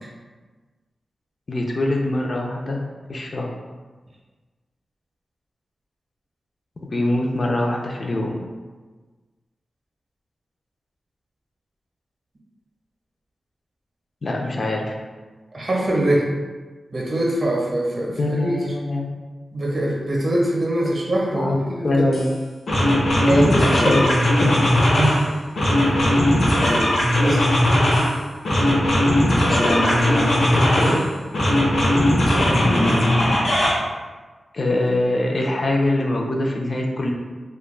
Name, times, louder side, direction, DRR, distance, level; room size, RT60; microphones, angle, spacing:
voice 1, 1.5-2.8 3.1-3.5 6.9-8.3 14.2-14.9 18.2-19.1 21.3-21.6 21.8-22.3 23.3-24.1 24.4-24.8 29.3-31.0 34.5-37.1, left 1 dB, 50° left, 0 dB, 0.4 m, -23 dB
voice 2, 15.5-16.3 16.9-18.5 19.5-21.9 23.2-23.6 23.8-24.0 24.9-25.3 25.8-26.1 26.6-26.9 27.2-27.4, right 1 dB, 50° right, -3 dB, 0.6 m, -23 dB
sound 1, 22.1-22.3 22.7-25.2 25.5-28.1 28.4-31.0 31.3-33.7, left 1 dB, 85° left, 0.7 m, -18 dB
2.2 x 2.0 x 3.1 m, 1.4 s
wide cardioid pair, 85°, 0 cm